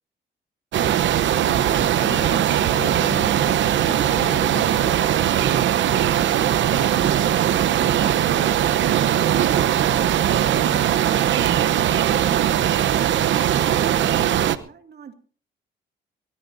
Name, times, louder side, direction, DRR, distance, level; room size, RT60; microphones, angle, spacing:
sound 1, 0.7-14.6, right 10 dB, 70° right, 1.0 m, -20 dB
voice 1, 1.2-5.2 11.3-11.6, left 5 dB, 40° left, 7 dB, 2.1 m, -37 dB
voice 2, 10.8-15.1, right 7 dB, 55° right, 7 dB, 2.2 m, -39 dB
22.5 x 18.5 x 2.7 m, 0.40 s
cardioid pair, 90°, 20 cm